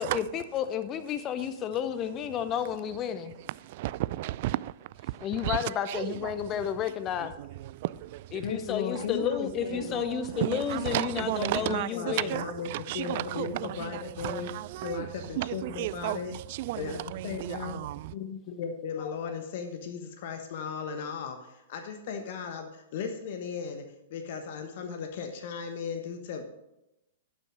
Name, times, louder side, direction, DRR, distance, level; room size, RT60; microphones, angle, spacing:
voice 1, 0.0-3.3 5.2-7.3 8.3-12.4 19.0-19.1, left 9 dB, 30° left, 0.7 m, -31 dB
voice 2, 3.3-6.7 7.2-8.6 8.9-18.1, right 16 dB, 50° right, 0.3 m, -34 dB
voice 3, 8.4-9.9 11.4-12.7 12.9-16.3 16.7-17.0 17.2-17.8 18.1-26.5, left 6 dB, 55° left, 1.1 m, -36 dB
11.0 x 6.1 x 6.1 m
hypercardioid pair, 110°, 0 cm